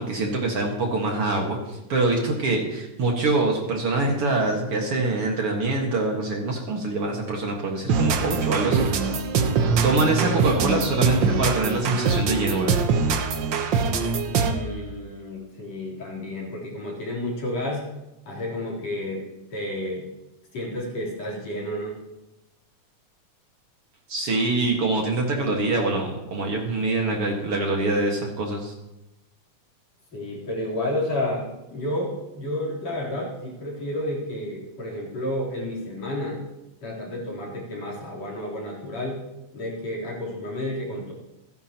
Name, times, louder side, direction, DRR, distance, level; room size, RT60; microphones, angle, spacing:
voice 1, 0.0-9.3 9.8-12.7 24.1-28.7, right 2 dB, 50° right, 0 dB, 2.4 m, -24 dB
sound 1, 7.9-14.7, right 5 dB, 85° right, 1.0 m, -23 dB
voice 2, 14.3-17.9 18.3-19.2 19.5-20.0 20.5-22.0 30.1-36.4 36.8-39.2 39.5-41.1, left 1 dB, 60° left, -4 dB, 4.8 m, -31 dB
27.0 x 10.5 x 2.9 m, 0.95 s
omnidirectional pair, 3.5 m